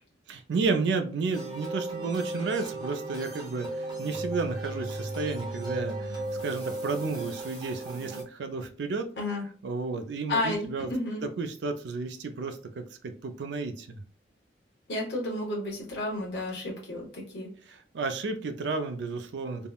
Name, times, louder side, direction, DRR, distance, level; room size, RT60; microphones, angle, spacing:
voice 1, 0.3-9.1 9.6-10.9 11.4-14.0 17.7-19.7, right 4 dB, 75° right, 8 dB, 0.4 m, -32 dB
sound 1, 1.3-8.2, right 2 dB, 25° right, 0.8 m, -35 dB
voice 2, 10.3-11.2 14.9-17.5, left 2 dB, 65° left, -3 dB, 0.8 m, -32 dB
3.6 x 2.0 x 2.2 m, 0.42 s
head